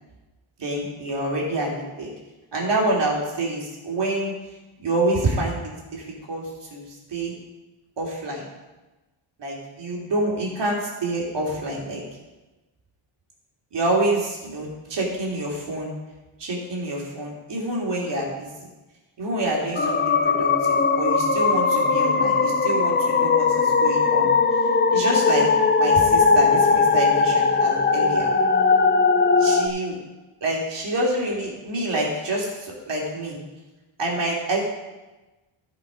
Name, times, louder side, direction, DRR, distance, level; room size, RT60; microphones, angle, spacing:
voice 1, 0.6-1.7 2.0-2.1 2.5-4.3 4.8-6.4 6.7-7.3 8.0-8.5 9.4-12.0 13.7-15.9 16.4-18.7 19.2-24.3 24.9-25.5 25.8-28.3 29.4-30.0 30.4-33.4 34.0-34.7, right 1 dB, 55° right, -3 dB, 3.1 m, -27 dB
sound 1, 19.8-29.7, left 4 dB, 20° left, 0.5 m, -19 dB
14.0 x 5.4 x 5.1 m, 1.1 s
wide cardioid pair, 135°, 50 cm